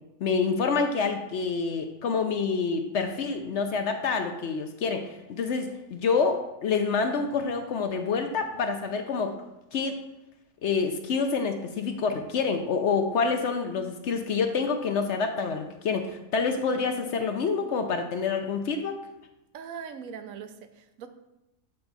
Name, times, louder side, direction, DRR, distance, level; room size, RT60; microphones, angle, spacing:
voice 1, 0.2-9.3 9.7-10.0 10.6-19.0, left 5 dB, 60° left, 6 dB, 0.8 m, -27 dB
voice 2, 19.5-21.1, right 7 dB, 75° right, 9 dB, 1.1 m, -40 dB
8.8 x 4.5 x 4.0 m, 0.94 s
omnidirectional pair, 1.5 m